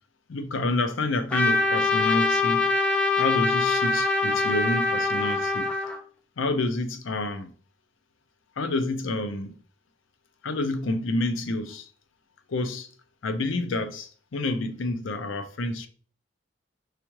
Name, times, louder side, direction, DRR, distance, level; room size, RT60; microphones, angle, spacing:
voice 1, 0.3-2.7 3.2-5.7 6.4-7.5 8.6-9.6 10.4-11.9 12.5-12.9 13.2-15.9, left 2 dB, 75° left, 0.6 m, -28 dB
Trumpet, 1.3-6.0, left 3 dB, 5° left, 0.5 m, -24 dB
4.9 x 3.5 x 3.0 m
head